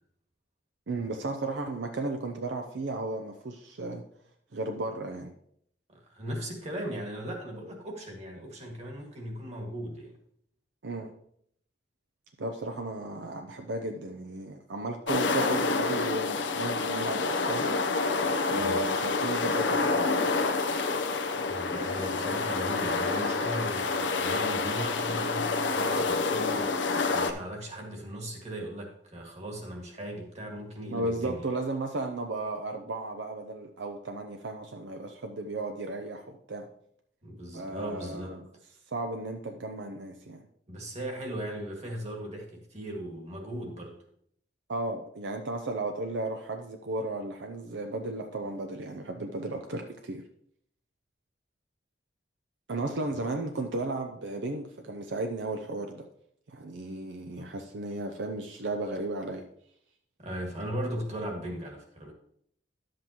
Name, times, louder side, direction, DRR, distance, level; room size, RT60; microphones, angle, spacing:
voice 1, 0.9-4.0 4.5-5.3 9.0-9.1 10.8-11.1 12.4-17.7 18.2-20.2 30.9-36.6 37.5-38.4 38.9-40.4 44.7-50.2 52.7-56.0 56.5-59.4, right 2 dB, 75° right, 4 dB, 0.6 m, -34 dB
voice 2, 5.9-10.1 18.5-18.8 21.5-31.5 37.2-38.4 40.7-43.9 53.1-53.2 57.4-57.5 60.2-62.1, equal, 40° right, 1 dB, 1.9 m, -38 dB
sound 1, 15.1-27.3, left 3 dB, 80° left, 0.7 m, -28 dB
11.0 x 7.6 x 2.9 m, 0.69 s
head